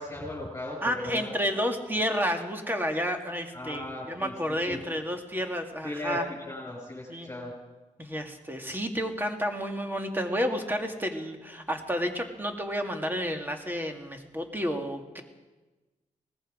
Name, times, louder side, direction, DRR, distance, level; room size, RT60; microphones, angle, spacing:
voice 1, 0.0-1.3 3.5-4.3 4.7-4.8 5.8-6.2 6.4-7.5, left 1 dB, 20° left, -5 dB, 5.6 m, -37 dB
voice 2, 0.8-6.2 7.1-7.3 8.0-15.2, equal, 15° right, 4 dB, 2.1 m, -31 dB
19.5 x 14.5 x 5.1 m, 1.2 s
cardioid pair, 70°, 13 cm